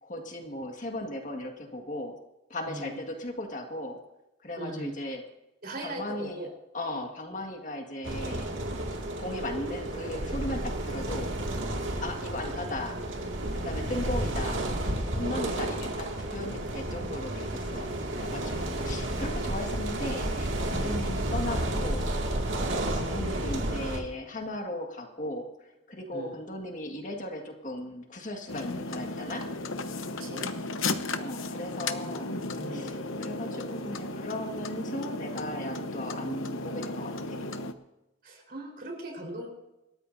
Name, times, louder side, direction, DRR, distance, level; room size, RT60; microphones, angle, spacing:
voice 1, 0.0-2.2 2.5-4.0 4.4-5.2 5.8-6.4 6.7-8.6 9.2-11.3 12.0-13.0 13.6-14.6 14.9-22.1 22.6-29.4 31.1-32.4 32.7-37.5, left 1 dB, 40° left, 2 dB, 1.8 m, -37 dB
voice 2, 4.6-4.9 5.6-6.5 6.9-7.1 11.8-12.1 18.3-19.1 20.7-21.0 26.1-26.3 30.2-30.5 32.6-32.9 38.2-39.5, right 1 dB, 50° right, 0 dB, 4.4 m, -39 dB
sound 1, 8.0-24.0, right 1 dB, 70° right, 2.3 m, -31 dB
sound 2, 28.5-37.7, left 2 dB, 75° left, 1.0 m, -35 dB
27.0 x 13.5 x 2.7 m, 0.95 s
head